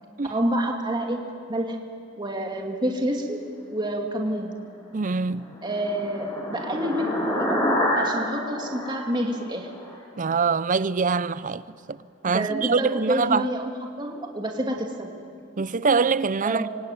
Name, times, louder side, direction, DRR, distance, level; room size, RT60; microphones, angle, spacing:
voice 1, 0.3-1.2 1.5-1.8 2.2-3.4 3.7-4.5 5.6-7.6 8.0-9.7 12.3-13.7 14.0-15.1 16.4-16.7, right 1 dB, 25° right, 2.5 m, -28 dB
voice 2, 4.9-5.5 10.2-12.0 12.2-13.5 15.6-16.6, right 5 dB, 40° right, 0.6 m, -24 dB
sound 1, 5.1-9.9, equal, 20° left, 6.4 m, -28 dB
26.0 x 24.0 x 9.2 m
head